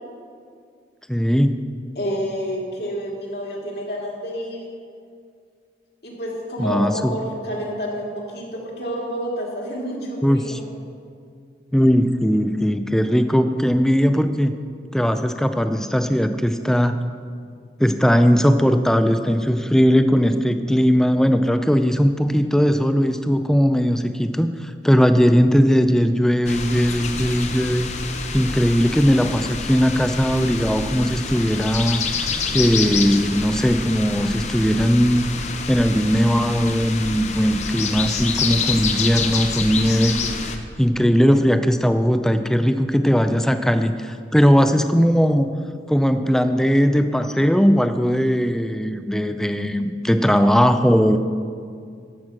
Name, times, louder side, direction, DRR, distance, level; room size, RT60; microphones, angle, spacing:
voice 1, 1.1-1.6 6.6-7.1 10.2-10.6 11.7-14.5 14.9-17.0 17.8-27.9 28.3-32.0 32.5-35.3 35.7-40.2 40.8-45.5 45.9-51.2, equal, 5° left, 9 dB, 0.4 m, -18 dB
voice 2, 2.0-4.6 6.0-10.6, equal, 60° left, -2 dB, 2.4 m, -29 dB
sound 1, 26.4-40.6, left 4 dB, 40° left, 0.7 m, -27 dB
13.5 x 6.0 x 6.3 m, 2.2 s
head